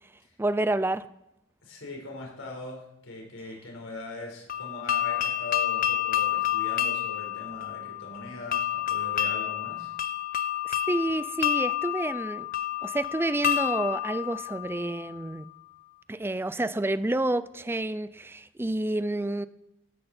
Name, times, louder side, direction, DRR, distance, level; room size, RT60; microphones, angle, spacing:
voice 1, 0.4-1.1 10.7-12.5 12.8-15.5 16.1-19.5, right 1 dB, 10° right, 15 dB, 0.4 m, -29 dB
voice 2, 1.6-9.9, left 2 dB, 75° left, 0 dB, 4.4 m, -41 dB
sound 1, 4.5-15.3, left 11 dB, 45° left, 0.7 m, -29 dB
15.5 x 12.0 x 4.3 m, 0.86 s
head